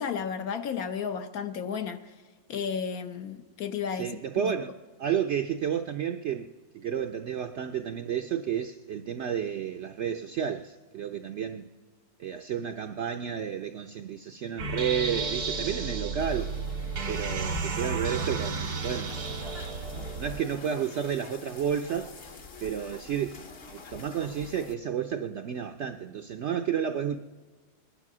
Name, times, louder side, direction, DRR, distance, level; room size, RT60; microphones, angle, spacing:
voice 1, 0.0-2.1 2.5-4.1 4.4-4.5, left 7 dB, 70° left, 1.3 m, -33 dB
voice 2, 4.0-4.7 5.0-6.5 6.7-11.7 12.2-16.5 17.1-19.2 20.2-22.1 22.6-23.4 23.7-27.2, right 8 dB, 65° right, 0.7 m, -31 dB
sound 1, 14.6-20.4, right 4 dB, 90° right, 2.3 m, -32 dB
sound 2, 16.2-24.7, left 4 dB, 45° left, 1.0 m, -46 dB
21.0 x 10.5 x 6.1 m
omnidirectional pair, 1.6 m